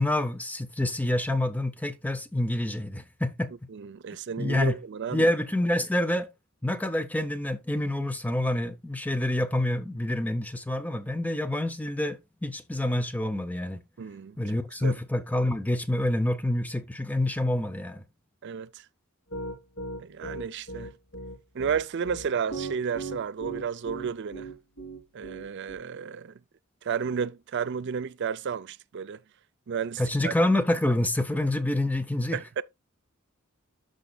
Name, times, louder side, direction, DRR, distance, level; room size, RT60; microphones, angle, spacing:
voice 1, 0.0-3.5 4.4-4.8 5.1-6.3 6.6-13.8 14.4-18.0 30.0-32.4, left 1 dB, 5° left, 0.6 m, -27 dB
voice 2, 3.7-5.3 14.0-14.4 14.8-15.0 18.4-18.8 20.0-20.9 21.5-24.5 25.1-26.4 26.8-29.2 29.7-30.3 32.3-32.6, right 6 dB, 50° right, 0.4 m, -32 dB
Piano, 19.3-25.8, right 2 dB, 70° left, 3.7 m, -37 dB
13.0 x 5.2 x 2.3 m
head